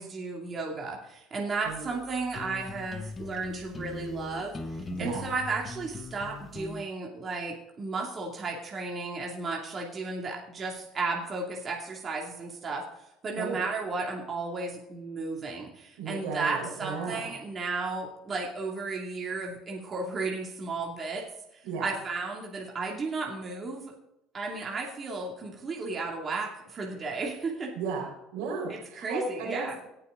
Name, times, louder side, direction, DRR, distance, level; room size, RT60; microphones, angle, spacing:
voice 1, 0.0-4.6 5.0-12.8 13.2-21.2 21.5-23.9 24.3-27.7 28.7-29.8, right 3 dB, 35° right, -1 dB, 2.6 m, -34 dB
sound 1, 1.6-6.8, left 3 dB, 25° left, 1.3 m, -41 dB
voice 2, 4.9-5.3 13.4-13.6 16.0-17.3 21.6-21.9 27.7-29.9, right 4 dB, 80° right, 0 dB, 4.6 m, -35 dB
18.5 x 6.8 x 3.8 m, 0.84 s
supercardioid pair, 95°, 0 cm